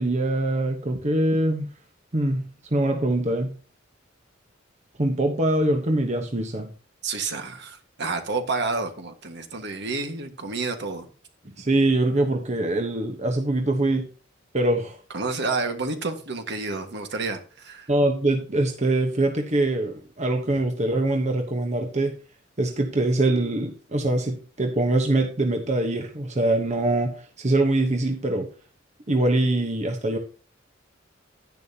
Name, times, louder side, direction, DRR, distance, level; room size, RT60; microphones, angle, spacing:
voice 1, 0.0-1.7 2.1-3.6 5.0-6.7 11.6-14.1 14.5-15.0 17.9-22.2 22.6-28.5 29.1-30.2, right 2 dB, 35° right, 1.1 m, -23 dB
voice 2, 7.0-11.1 15.1-17.9, right 3 dB, 60° right, 1.7 m, -29 dB
10.5 x 10.5 x 2.9 m
head